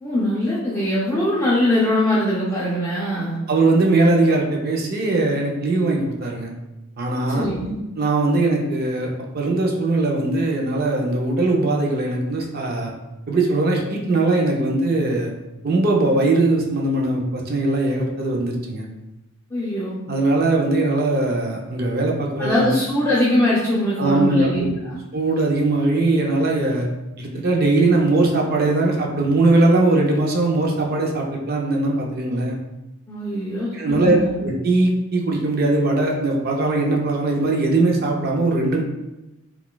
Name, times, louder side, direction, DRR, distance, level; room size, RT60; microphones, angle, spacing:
voice 1, 0.0-3.4 7.3-7.8 19.5-20.0 22.4-25.0 33.1-34.4, left 1 dB, 10° left, -8 dB, 0.4 m, -22 dB
voice 2, 3.5-6.5 7.0-7.5 8.0-12.9 13.3-15.3 15.6-18.8 20.1-22.7 24.0-24.7 25.1-26.9 27.2-32.6 33.7-38.8, right 2 dB, 45° right, 0 dB, 0.5 m, -20 dB
3.9 x 2.3 x 2.2 m, 1.0 s
head